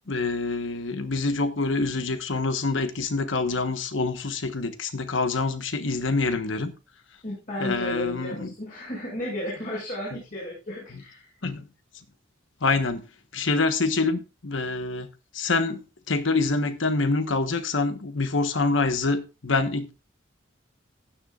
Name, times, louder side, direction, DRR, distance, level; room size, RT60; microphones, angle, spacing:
voice 1, 0.1-6.7 7.6-8.5 10.1-10.2 11.4-11.7 12.6-13.0 13.3-19.9, left 3 dB, 80° left, 1.2 m, -26 dB
voice 2, 7.2-11.3, equal, 45° left, 6.2 m, -33 dB
15.5 x 10.0 x 2.4 m
head